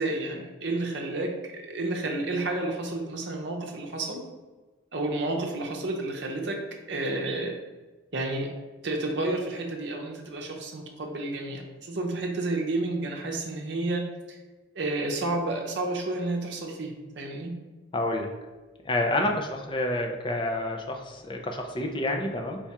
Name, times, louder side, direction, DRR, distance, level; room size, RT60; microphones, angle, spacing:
voice 1, 0.0-4.2 4.9-6.6 6.9-7.6 8.1-8.5 8.8-14.4 14.7-17.5, right 2 dB, 55° right, 1 dB, 0.7 m, -31 dB
voice 2, 17.9-18.3 18.8-22.6, left 1 dB, 25° left, 3 dB, 0.4 m, -28 dB
4.6 x 2.4 x 4.1 m, 1.2 s
head